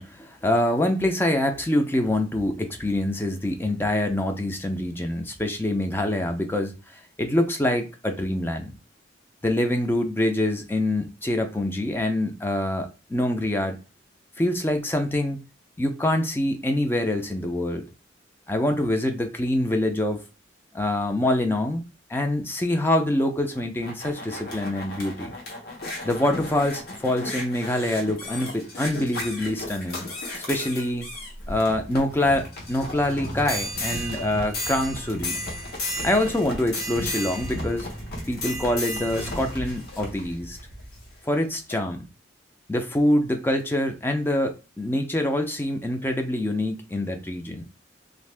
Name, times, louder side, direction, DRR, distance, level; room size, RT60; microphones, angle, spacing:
voice 1, 0.0-8.7 9.4-13.8 14.4-15.4 15.8-17.8 18.5-20.2 20.7-21.8 22.1-25.4 26.0-30.1 30.5-31.1 31.5-35.3 36.0-37.9 38.3-40.6 41.2-42.1 42.7-47.6, left 1 dB, 10° left, 0.4 m, -25 dB
sound 1, 23.5-41.1 41.7-41.8, left 1 dB, 55° left, 1.0 m, -34 dB
2.8 x 2.6 x 3.3 m
head